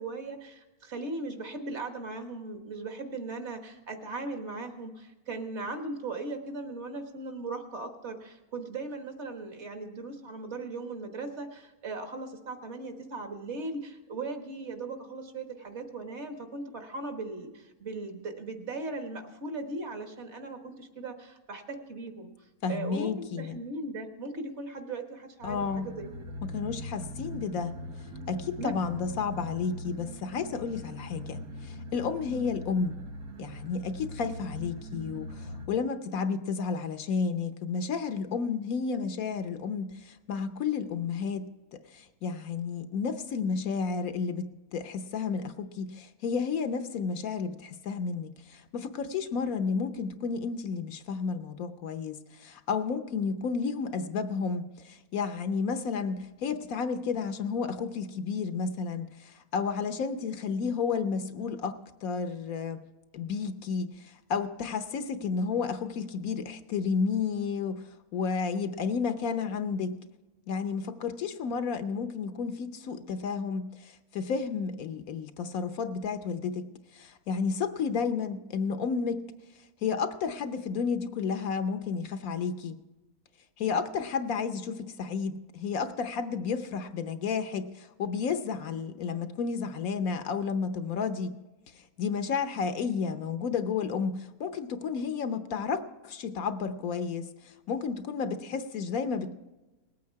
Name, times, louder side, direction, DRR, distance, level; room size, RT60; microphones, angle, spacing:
voice 1, 0.0-22.3 22.7-23.1 23.4-26.1 28.6-28.7, right 3 dB, 50° right, 6 dB, 1.6 m, -38 dB
voice 2, 22.6-23.6 25.4-25.9 26.4-27.7 28.3-33.0 33.4-41.5 41.7-44.5 44.7-61.8 62.0-62.8 63.1-69.9 70.5-76.7 76.9-79.2 79.8-82.7 83.6-91.3 91.8-99.3, left 5 dB, 70° left, 9 dB, 1.2 m, -32 dB
sound 1, 25.4-35.7, equal, 85° right, 1.5 m, -41 dB
19.5 x 8.6 x 4.6 m, 1.1 s
omnidirectional pair, 1.6 m